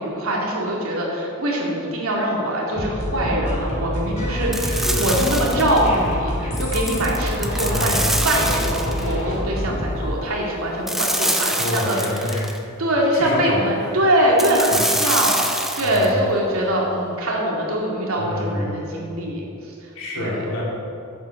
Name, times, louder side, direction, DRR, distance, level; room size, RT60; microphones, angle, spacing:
voice 1, 0.0-12.0 12.8-19.5 20.2-20.4, right 1 dB, 75° right, -2 dB, 2.3 m, -23 dB
sound 1, 2.8-10.2, equal, 30° left, 2.4 m, -26 dB
sound 2, 4.5-5.9 6.6-9.1 10.9-12.6 14.4-16.1, right 1 dB, ahead, 0.5 m, -25 dB
voice 2, 4.8-5.4 7.7-8.0 11.5-12.5 13.1-13.9 14.7-14.8 15.8-16.3 18.2-19.1 19.9-20.6, left 1 dB, 70° left, -4 dB, 2.7 m, -27 dB
8.4 x 7.8 x 6.6 m, 2.6 s
head